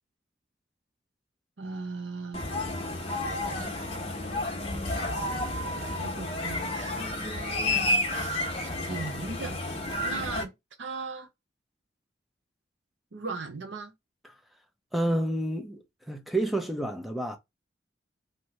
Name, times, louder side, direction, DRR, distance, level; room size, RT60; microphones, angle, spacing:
voice 1, 1.6-2.4 5.1-7.8 8.1-9.6 10.0-10.5 10.8-11.3 13.1-13.9, right 3 dB, 90° right, 0.8 m, -38 dB
sound 1, 2.3-10.4, left 1 dB, 35° left, 0.9 m, -31 dB
voice 2, 14.9-15.8 16.1-17.4, right 1 dB, ahead, 0.6 m, -29 dB
3.3 x 2.6 x 3.0 m
head